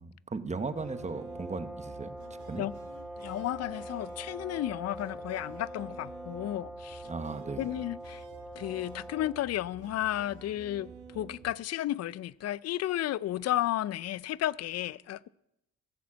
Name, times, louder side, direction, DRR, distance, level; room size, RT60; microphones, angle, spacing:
voice 1, 0.0-2.6 7.1-7.8, right 4 dB, 25° right, 1.0 m, -37 dB
sound 1, 0.6-9.5, right 1 dB, 5° right, 1.8 m, -44 dB
sound 2, 0.8-11.5, right 6 dB, 80° right, 2.5 m, -51 dB
voice 2, 3.2-7.0 7.6-8.2 8.6-15.3, left 13 dB, 55° left, 0.4 m, -33 dB
15.0 x 7.3 x 7.4 m
cardioid pair, 90°, 30 cm